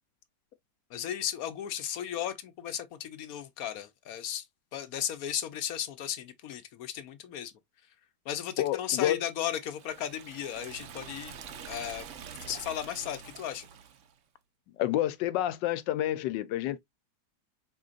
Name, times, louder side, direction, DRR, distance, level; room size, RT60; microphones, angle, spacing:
voice 1, 0.9-4.4 4.7-7.5 8.3-11.3 11.7-12.1 12.4-13.7, left 10 dB, 65° left, 1.0 m, -35 dB
voice 2, 8.6-9.2 14.8-16.8, left 13 dB, 85° left, 1.3 m, -29 dB
Liquid, 9.5-14.1, right 7 dB, 60° right, 0.8 m, -46 dB
5.0 x 3.8 x 2.3 m
omnidirectional pair, 1.9 m